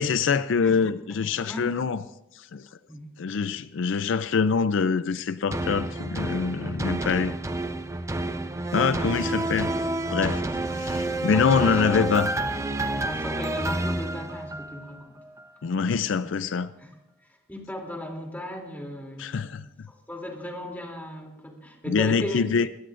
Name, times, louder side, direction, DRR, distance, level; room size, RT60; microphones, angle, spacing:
voice 1, 0.0-2.0 2.3-2.7 3.2-7.3 8.7-9.7 10.1-10.4 10.8-12.3 15.6-16.7 19.2-19.6 21.9-22.7, left 5 dB, 70° left, 0.4 m, -25 dB
voice 2, 1.2-1.7 2.9-3.1 11.3-12.2 13.0-15.2 16.8-16.9 17.5-19.6 19.9-22.4, left 1 dB, 10° left, 2.9 m, -37 dB
sound 1, 5.5-14.9 15.4-15.5, right 2 dB, 15° right, 0.6 m, -29 dB
23.0 x 16.5 x 2.5 m
head